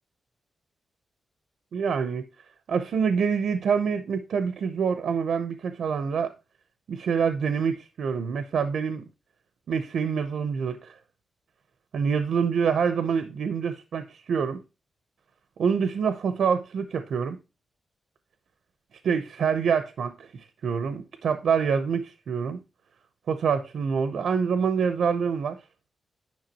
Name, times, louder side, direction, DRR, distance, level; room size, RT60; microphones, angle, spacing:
voice 1, 1.7-2.2 2.7-6.3 6.9-9.0 9.7-10.9 11.9-14.6 15.6-17.4 19.0-22.6 23.3-25.6, right 6 dB, 80° right, 0.7 m, -26 dB
10.5 x 5.8 x 2.9 m
wide cardioid pair, 140°, 0 cm